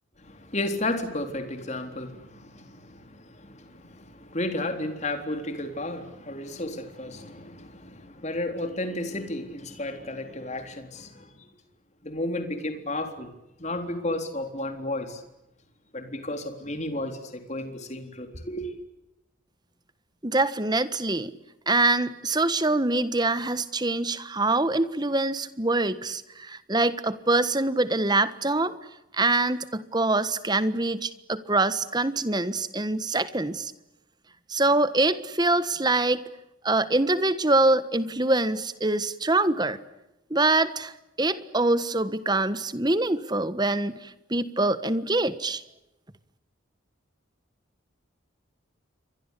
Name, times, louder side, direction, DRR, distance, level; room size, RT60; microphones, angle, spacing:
voice 1, 0.2-11.5 12.0-13.3 13.6-15.2 15.9-18.7, left 1 dB, 35° left, 3.8 m, -33 dB
voice 2, 20.2-21.3 21.7-28.8 29.1-33.7 34.5-36.2 36.6-39.8 40.3-45.6, right 2 dB, 20° right, 1.4 m, -24 dB
29.5 x 24.0 x 8.4 m
head